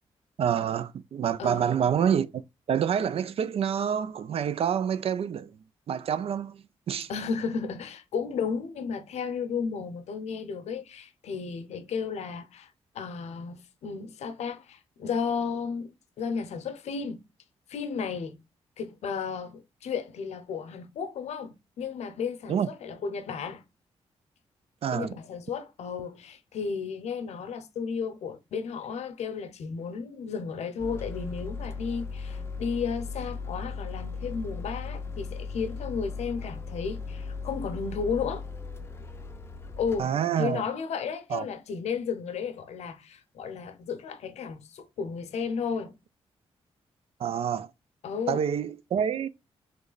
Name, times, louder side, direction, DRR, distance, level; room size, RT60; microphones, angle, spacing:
voice 1, 0.4-2.4 2.7-5.5 5.9-7.1 22.5-22.7 24.8-25.2 40.0-40.6 41.3-41.5 47.2-47.7 48.3-49.3, right 8 dB, 60° right, 0.4 m, -27 dB
voice 2, 1.4-1.8 7.1-12.7 12.9-17.2 17.7-18.4 18.8-23.6 24.9-38.5 39.8-45.9 48.0-48.4, left 6 dB, 80° left, 0.6 m, -33 dB
sound 1, 30.8-40.0, left 4 dB, 20° left, 0.5 m, -37 dB
3.2 x 3.0 x 3.9 m
cardioid pair, 80°, 11 cm